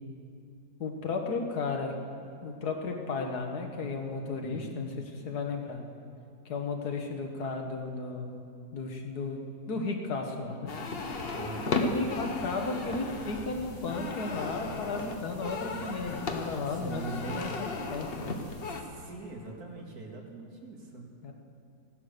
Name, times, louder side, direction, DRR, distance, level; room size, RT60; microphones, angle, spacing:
voice 1, 0.8-2.0 2.4-5.8 6.5-8.4 8.7-10.7 11.7-18.3 21.2-21.3, left 3 dB, 75° left, 3 dB, 1.8 m, -34 dB
voice 2, 4.4-4.8 11.3-11.8 16.7-17.5 18.6-21.1, right 3 dB, 70° right, 0 dB, 2.4 m, -42 dB
sound 1, 10.7-18.8, left 3 dB, 40° left, 1.1 m, -35 dB
16.0 x 11.5 x 6.6 m, 2.4 s
omnidirectional pair, 1.7 m